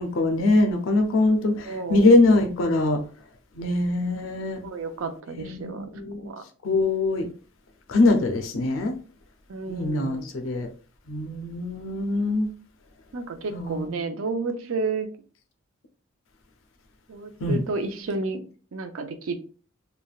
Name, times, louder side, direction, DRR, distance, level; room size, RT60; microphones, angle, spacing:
voice 1, 0.0-3.0 3.6-4.6 5.3-6.3 6.6-7.3 7.9-8.9 9.7-10.7 11.1-12.5 13.5-13.9 17.4-17.6, left 2 dB, 70° left, 0.5 m, -22 dB
voice 2, 1.7-2.1 4.6-5.9 6.2-6.4 9.5-10.2 13.1-15.1 17.1-18.4 18.7-19.4, right 3 dB, 75° right, 0.5 m, -31 dB
3.3 x 2.2 x 2.3 m
head